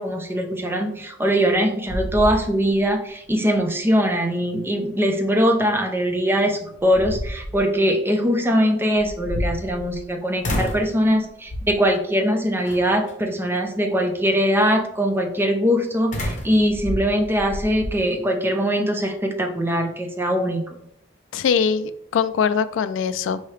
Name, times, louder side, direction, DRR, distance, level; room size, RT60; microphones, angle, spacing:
voice 1, 0.0-20.6, equal, 10° right, 3 dB, 0.5 m, -21 dB
sound 1, 1.2-1.6 1.9-2.9 3.3-3.4 6.1-6.2 6.7-7.6 9.0-10.1 10.4-10.9 11.5-11.9 12.7-13.1 16.1-17.9, equal, 40° left, 0.9 m, -29 dB
voice 2, 21.3-23.4, left 6 dB, 80° left, 12 dB, 0.3 m, -22 dB
4.6 x 2.8 x 3.2 m, 0.72 s
head